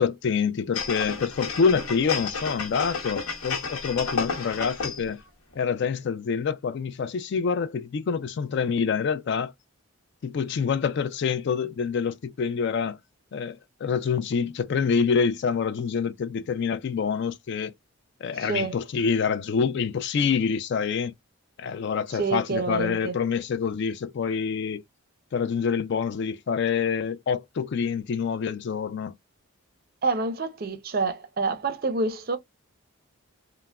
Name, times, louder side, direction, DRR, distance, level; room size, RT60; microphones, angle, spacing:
voice 1, 0.0-5.2 5.6-9.5 10.2-13.0 13.3-17.7 18.2-21.1 21.6-24.8 25.3-29.1, left 6 dB, 55° left, 0.3 m, -26 dB
sound 1, 0.7-5.1 5.5-5.6, left 4 dB, 85° left, 0.9 m, -31 dB
voice 2, 18.4-18.8 22.1-23.1 30.0-32.4, right 3 dB, 45° right, 0.5 m, -27 dB
3.2 x 2.0 x 2.2 m
head